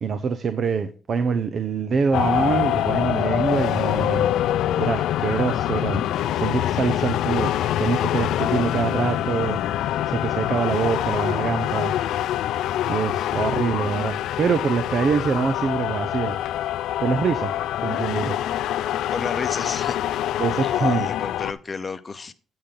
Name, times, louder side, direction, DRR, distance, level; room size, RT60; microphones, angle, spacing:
voice 1, 0.0-4.3 4.8-6.0 6.3-7.5 7.8-9.6 10.0-11.9 12.9-16.4 17.0-17.5 17.8-18.4 20.4-21.1, right 5 dB, 50° right, 0.8 m, -24 dB
sound 1, 2.1-21.5, left 12 dB, 85° left, 0.5 m, -25 dB
voice 2, 19.1-22.3, left 4 dB, 30° left, 0.8 m, -33 dB
8.8 x 8.6 x 3.8 m
cardioid pair, 90°, 0 cm